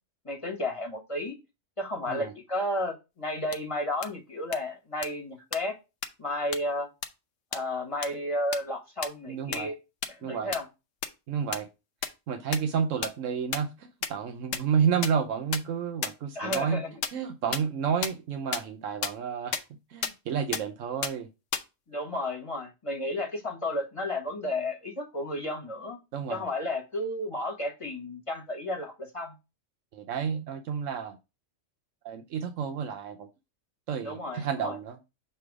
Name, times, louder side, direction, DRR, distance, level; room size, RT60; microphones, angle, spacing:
voice 1, 0.2-1.3 1.8-5.7 6.2-6.9 7.5-9.7 10.1-10.6 16.3-16.9 21.9-26.0 26.3-29.3 34.0-34.8, left 1 dB, 25° left, 1.4 m, -32 dB
sound 1, 3.5-3.6 4.0-4.1 4.5-4.6 5.0-5.1 5.5-5.6 6.0-6.1 6.5-6.6 7.0-7.1 7.5-7.6 8.0-8.1 8.5-8.6 9.0-9.1 9.5-9.6 10.0-10.1 10.5-10.6 11.0-11.1 11.5-11.6 12.0-12.1 12.5-12.6 13.0-13.1 13.5-13.6 14.0-14.1 14.5-14.6 15.0-15.1 15.5-15.6 16.0-16.1 16.5-16.6 17.0-17.1 17.5-17.6 18.0-18.1 18.5-18.6 19.0-19.1 19.5-19.6 20.0-20.1 20.5-20.6 21.0-21.1 21.5-21.6, left 7 dB, 80° left, 1.1 m, -29 dB
voice 2, 9.3-9.7 10.2-10.5 11.3-11.7 12.3-16.8 17.1-19.6 19.9-21.3 26.1-26.5 29.9-31.2 32.0-33.3 33.9-35.0, right 7 dB, 80° right, 1.0 m, -30 dB
6.8 x 3.2 x 4.7 m
omnidirectional pair, 1.3 m